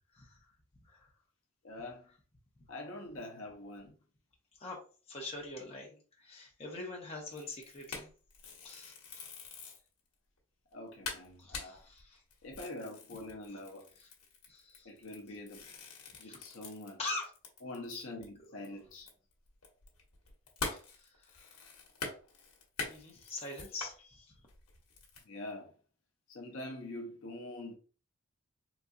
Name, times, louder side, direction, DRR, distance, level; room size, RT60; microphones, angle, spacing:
voice 1, 1.6-2.0 2.7-3.9 10.7-11.8 12.4-13.9 14.8-15.6 16.2-17.0 17.6-19.1 25.3-25.7 26.3-27.8, left 1 dB, 65° left, 0.7 m, -44 dB
voice 2, 5.1-8.1 8.6-8.9 11.4-12.2 13.5-13.6 14.0-14.1 14.5-14.9 16.2-16.4 17.0-17.3 17.9-18.0 18.4-18.8 20.7-21.6 22.9-24.3, left 2 dB, 30° left, 1.0 m, -44 dB
sound 1, 7.3-9.9 10.4-10.5 10.7-10.8 11.0-17.9 18.2-18.3 18.6-24.0 24.5-25.2, left 4 dB, 85° left, 1.1 m, -44 dB
4.0 x 2.6 x 2.3 m
head